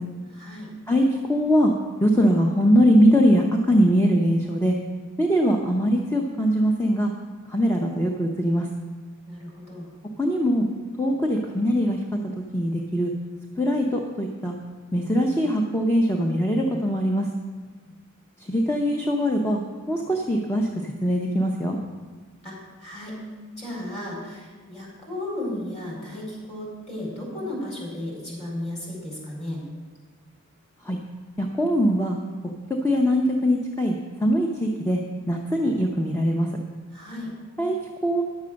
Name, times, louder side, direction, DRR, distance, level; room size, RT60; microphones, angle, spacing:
voice 1, 0.3-0.7 9.2-9.9 17.8-17.9 22.4-23.2 23.6-29.6 36.9-37.3, left 1 dB, 30° left, -4 dB, 4.3 m, -34 dB
voice 2, 0.9-1.7 2.0-4.8 5.2-7.1 7.5-8.7 10.2-10.7 11.0-12.0 12.5-13.1 13.6-14.5 14.9-17.3 18.5-19.6 19.9-20.7 21.0-21.8 30.9-31.0 31.4-32.2 32.8-34.0 34.2-35.0 35.3-36.5 37.6-37.8 38.0-38.2, equal, 10° left, 0 dB, 0.8 m, -21 dB
11.0 x 7.3 x 6.3 m, 1.4 s
head